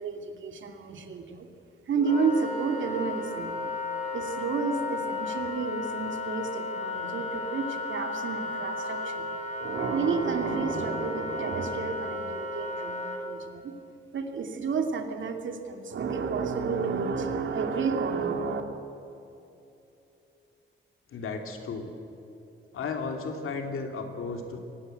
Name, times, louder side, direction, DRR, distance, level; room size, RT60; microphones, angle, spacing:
voice 1, 0.0-1.5 1.9-3.5 4.1-9.3 9.6-13.7 14.1-18.6, right 5 dB, 65° right, 5 dB, 2.6 m, -31 dB
Wind instrument woodwind instrument, 2.0-13.2, left 2 dB, 35° left, 3.2 m, -34 dB
voice 2, 21.1-21.9 22.7-24.6, left 4 dB, 80° left, 4 dB, 3.1 m, -34 dB
24.0 x 19.5 x 8.0 m, 2.8 s
wide cardioid pair, 175°, 21 cm